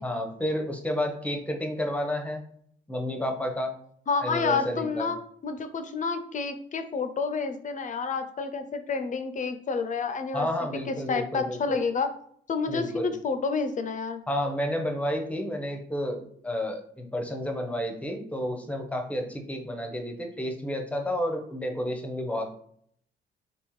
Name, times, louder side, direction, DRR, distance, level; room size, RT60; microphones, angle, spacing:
voice 1, 0.0-2.4 2.9-3.7 4.2-5.1 10.3-11.8 12.7-13.1 14.3-22.5, equal, 5° left, 4 dB, 0.7 m, -31 dB
voice 2, 4.1-5.2 5.4-10.5 10.9-12.1 12.5-14.2, left 4 dB, 40° left, 9 dB, 0.5 m, -29 dB
3.5 x 2.9 x 3.1 m, 0.64 s
cardioid pair, 90°, 20 cm